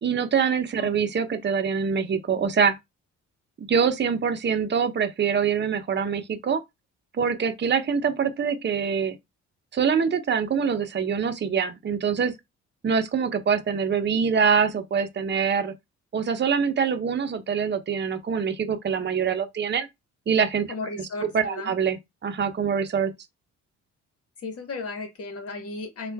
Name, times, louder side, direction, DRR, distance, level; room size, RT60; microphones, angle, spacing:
voice 1, 0.0-2.7 3.6-6.6 7.1-9.1 9.7-12.3 12.8-15.7 16.1-19.9 20.3-20.7 21.2-23.1, right 6 dB, 35° right, 0.8 m, -24 dB
voice 2, 20.7-21.7 24.4-26.1, left 3 dB, 50° left, 1.5 m, -35 dB
4.3 x 2.5 x 3.5 m
cardioid pair, 90°, 30 cm